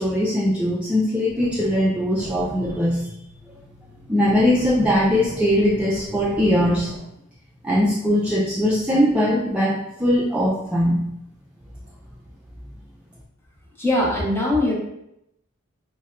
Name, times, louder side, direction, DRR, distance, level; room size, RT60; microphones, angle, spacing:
voice 1, 0.0-3.1 4.1-6.9 7.6-11.1, equal, 5° right, -6 dB, 0.3 m, -20 dB
sound 1, 1.3-7.0, equal, 50° left, 0.9 m, -38 dB
voice 2, 13.8-14.8, left 1 dB, 10° left, -4 dB, 0.7 m, -21 dB
4.0 x 2.1 x 2.3 m, 0.81 s
head